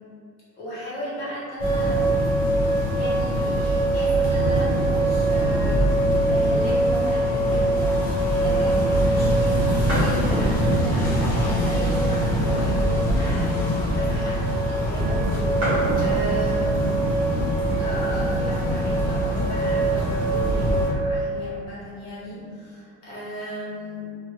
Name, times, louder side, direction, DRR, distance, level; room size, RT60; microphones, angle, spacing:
voice 1, 0.5-2.4 2.7-17.0 17.4-17.5 17.8-24.1, equal, 45° left, -9 dB, 1.3 m, -35 dB
sound 1, 1.6-20.9, right 1 dB, 25° left, 0.5 m, -22 dB
sound 2, 9.9-10.2 10.9-11.0 11.8-12.9 13.3-13.4 13.6-13.8 14.6-14.7 14.9-15.0 15.3-15.4 15.6-16.0 16.9-17.2 17.8-17.9 18.0-18.8, equal, 30° right, 1.0 m, -30 dB
2.6 x 2.5 x 2.8 m, 2.2 s
cardioid pair, 165°, 38 cm